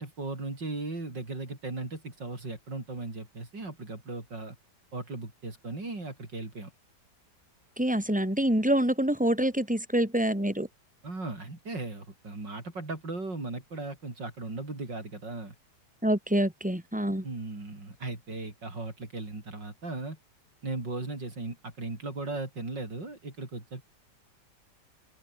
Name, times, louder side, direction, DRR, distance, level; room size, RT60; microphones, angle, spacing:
voice 1, 0.0-4.6 4.9-6.7 11.0-15.5 17.2-20.2 20.6-23.8, right 2 dB, 85° right, 6.6 m, -37 dB
voice 2, 7.8-10.7 16.0-17.2, right 1 dB, 5° right, 5.4 m, -26 dB
open air
omnidirectional pair, 1.9 m